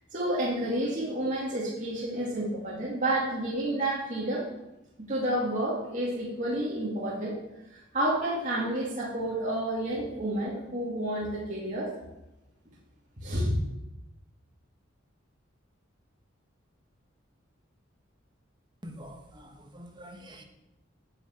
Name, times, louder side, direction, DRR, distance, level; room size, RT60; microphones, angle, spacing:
voice 1, 0.1-4.4 5.1-7.4 7.7-11.9 13.2-13.5, right 1 dB, 40° right, -6 dB, 2.3 m, -30 dB
voice 2, 18.8-20.4, equal, 25° right, 4 dB, 1.3 m, -46 dB
9.6 x 6.0 x 7.9 m, 0.95 s
head